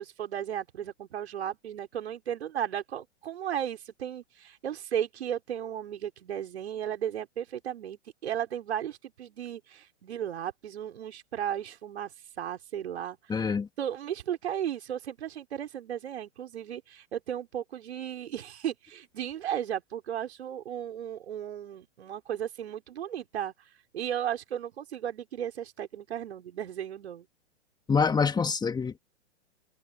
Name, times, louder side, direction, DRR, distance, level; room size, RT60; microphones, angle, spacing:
voice 1, 0.0-23.5 23.9-27.3, right 10 dB, 65° right, 5.7 m, -35 dB
voice 2, 13.3-13.7 27.9-29.0, left 5 dB, 10° left, 2.5 m, -26 dB
figure-of-eight pair, 115°, 36 cm